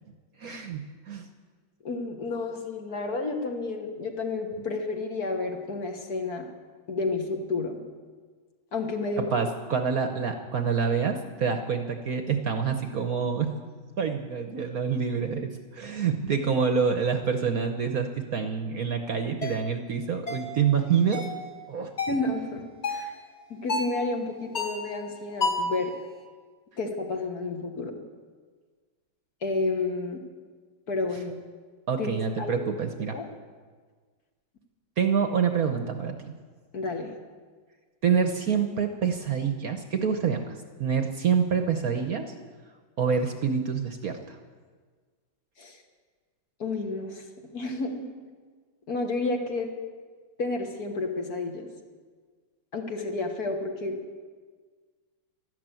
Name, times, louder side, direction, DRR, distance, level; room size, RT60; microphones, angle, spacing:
voice 1, 0.4-1.3 9.2-13.5 14.0-21.2 21.7-21.9 31.9-33.2 35.0-36.3 38.0-40.5 40.8-42.3 43.0-44.4, right 6 dB, 55° right, 6 dB, 1.2 m, -27 dB
voice 2, 1.8-6.5 6.9-7.8 8.7-9.3 22.1-23.1 23.5-25.9 26.8-28.0 29.4-30.2 30.9-31.4 32.0-32.6 33.1-33.3 36.7-37.1 45.6-45.8 46.6-47.2 47.5-48.0 48.9-49.7 50.4-51.7 52.7-54.0, left 3 dB, 50° left, 4 dB, 1.9 m, -31 dB
sound 1, 19.4-19.6 20.3-20.5 21.1-21.4 22.0-22.2 22.8-23.1 23.7-24.0 24.5-24.9 25.4-25.8, left 3 dB, 35° left, 1.9 m, -30 dB
12.5 x 12.5 x 9.0 m, 1.5 s
omnidirectional pair, 2.2 m